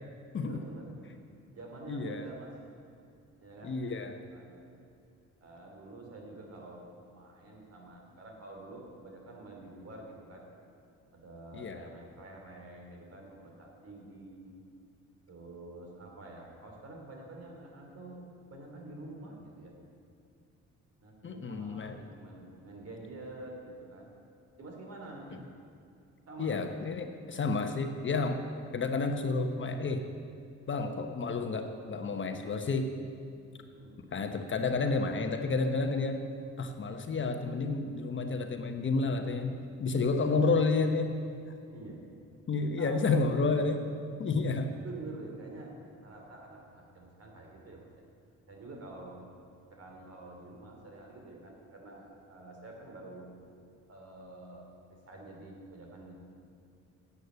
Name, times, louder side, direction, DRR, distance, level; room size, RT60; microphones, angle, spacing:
voice 1, 0.4-1.1 1.5-2.5 3.4-3.8 4.3-4.7 5.4-10.5 11.1-14.6 15.3-18.2 18.5-19.8 21.0-24.1 24.6-25.4 26.3-26.6 33.7-34.0 40.1-40.5 41.7-42.0 42.8-43.3 44.1-44.3 44.8-45.7 46.0-47.9 48.5-49.2 49.7-53.3 53.9-56.1, right 2 dB, 55° right, 1 dB, 3.0 m, -48 dB
voice 2, 1.9-2.2 3.6-4.1 11.5-11.8 21.2-22.0 26.4-30.0 30.7-32.9 34.1-36.2 36.6-41.1 42.5-43.8 44.2-44.7, left 3 dB, 40° left, 6 dB, 1.0 m, -30 dB
9.2 x 8.2 x 8.0 m, 2.6 s
cardioid pair, 90°, 30 cm